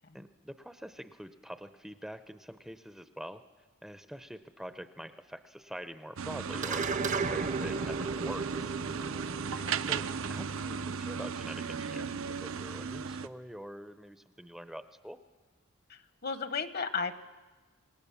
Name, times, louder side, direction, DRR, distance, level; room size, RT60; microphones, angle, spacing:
voice 1, 0.1-3.4 3.8-8.8 9.8-15.2, equal, ahead, 10 dB, 0.6 m, -45 dB
sound 1, 6.2-13.3, right 6 dB, 75° right, 0.7 m, -36 dB
sound 2, 6.6-11.3, right 4 dB, 35° right, 0.6 m, -36 dB
voice 2, 9.5-9.9 15.9-17.1, left 5 dB, 50° left, 12 dB, 1.1 m, -35 dB
26.5 x 18.5 x 7.0 m, 1.3 s
head